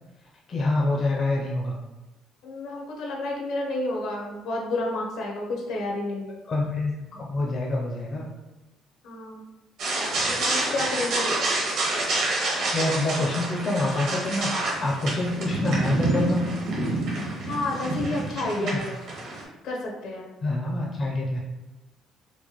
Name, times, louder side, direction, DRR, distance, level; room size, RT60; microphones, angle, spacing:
voice 1, 0.5-1.8 6.5-8.3 12.7-16.4 18.6-18.8 20.4-21.4, left 2 dB, 35° left, -3 dB, 0.5 m, -26 dB
voice 2, 2.4-6.3 9.0-9.4 10.2-11.3 17.5-19.0 19.6-20.3, left 2 dB, 70° left, -1 dB, 0.8 m, -30 dB
sound 1, 9.8-19.4, right 2 dB, 60° right, 1.0 m, -28 dB
4.5 x 2.2 x 2.9 m, 1.1 s
cardioid pair, 155°, 0 cm